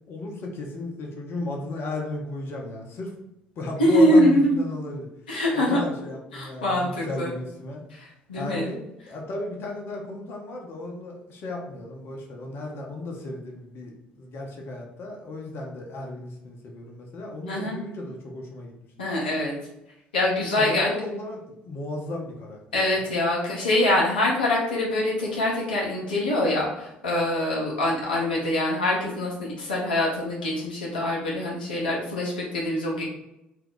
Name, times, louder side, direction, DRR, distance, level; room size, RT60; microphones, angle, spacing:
voice 1, 0.1-3.1 3.6-5.1 5.5-7.8 8.3-8.8 9.1-18.7 20.5-23.1, left 2 dB, 50° left, 0 dB, 0.7 m, -34 dB
voice 2, 3.8-4.5 5.3-5.8 6.3-7.3 7.9-8.7 17.5-17.8 19.0-19.6 20.1-20.9 22.7-33.0, left 1 dB, 85° left, -4 dB, 0.7 m, -24 dB
2.8 x 2.3 x 3.6 m, 0.86 s
hypercardioid pair, 55°, 5 cm